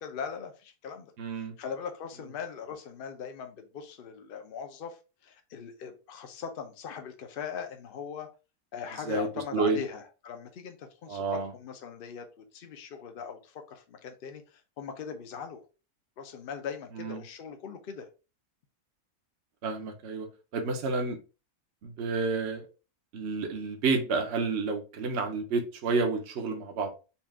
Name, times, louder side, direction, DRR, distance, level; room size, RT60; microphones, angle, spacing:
voice 1, 0.0-1.1 1.6-5.0 5.2-8.3 8.7-14.4 14.8-15.6 16.2-18.1, left 6 dB, 50° left, 5 dB, 0.7 m, -40 dB
voice 2, 1.2-1.5 9.1-9.3 9.5-9.8 11.1-11.5 17.0-17.2 19.6-20.3 20.5-21.2 21.8-22.6 23.1-26.9, right 4 dB, 55° right, 4 dB, 1.0 m, -30 dB
4.2 x 2.4 x 3.5 m, 0.32 s
omnidirectional pair, 1.6 m